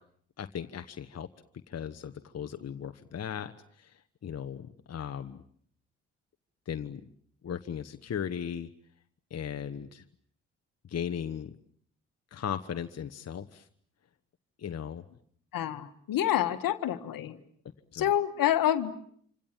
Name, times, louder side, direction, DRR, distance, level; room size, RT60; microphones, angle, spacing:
voice 1, 0.4-1.3 1.7-5.4 6.7-7.0 7.4-8.7 9.3-10.0 10.8-11.5 12.3-13.7 14.6-15.0 17.9-18.1, left 8 dB, 40° left, 8 dB, 1.3 m, -37 dB
voice 2, 15.5-17.4 18.0-18.9, left 11 dB, 60° left, 11 dB, 1.8 m, -27 dB
27.5 x 26.0 x 7.5 m, 0.62 s
hypercardioid pair, 40°, 38 cm